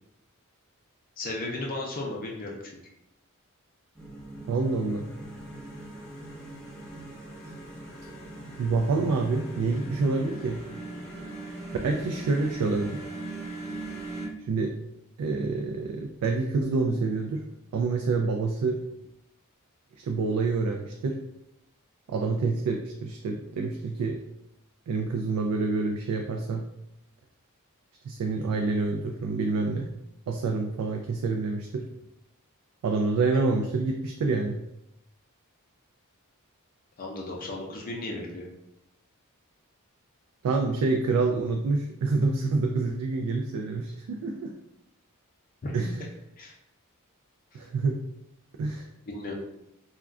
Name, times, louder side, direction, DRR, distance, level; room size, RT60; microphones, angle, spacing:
voice 1, 1.2-2.8 37.0-38.5 45.6-45.7 46.4-46.5 47.5-47.6 49.1-49.4, left 2 dB, 40° left, -1 dB, 0.4 m, -35 dB
sound 1, 3.9-14.3, right 2 dB, 5° left, 0.7 m, -40 dB
voice 2, 4.5-5.1 8.6-10.6 11.8-13.0 14.5-14.8 15.2-17.4 17.7-18.8 20.0-21.2 22.1-24.2 24.9-26.6 28.0-29.9 30.3-31.9 32.8-34.6 40.4-44.5 45.7-46.1 47.5-48.0 48.6-48.9, right 3 dB, 85° right, 3 dB, 0.3 m, -27 dB
2.3 x 2.1 x 3.5 m, 0.82 s
head